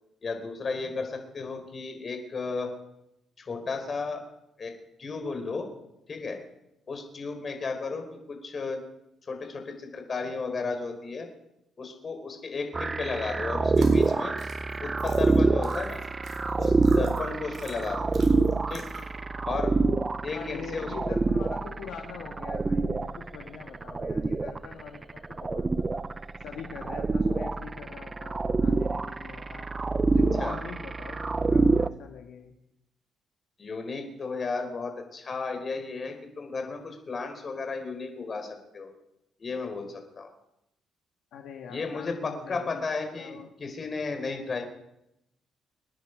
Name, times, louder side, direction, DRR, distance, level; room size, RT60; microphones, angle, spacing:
voice 1, 0.2-2.7 3.4-4.2 4.6-4.7 5.0-5.7 6.1-6.4 6.9-8.8 9.2-11.3 11.8-14.4 14.8-16.0 16.6-18.0 18.7-18.9 19.4-19.7 20.2-20.9 30.4-30.6 33.6-38.9 39.4-40.3 41.7-44.6, left 4 dB, 40° left, 5 dB, 4.3 m, -34 dB
sound 1, 12.7-31.9, right 3 dB, 25° right, 0.7 m, -26 dB
sound 2, 13.7-19.2, right 4 dB, 55° right, 4.4 m, -47 dB
voice 2, 20.3-26.0 26.4-29.7 30.0-32.5 41.3-43.5, left 7 dB, 80° left, 3 dB, 1.9 m, -43 dB
27.5 x 10.0 x 5.1 m, 0.84 s
cardioid pair, 90°, 0 cm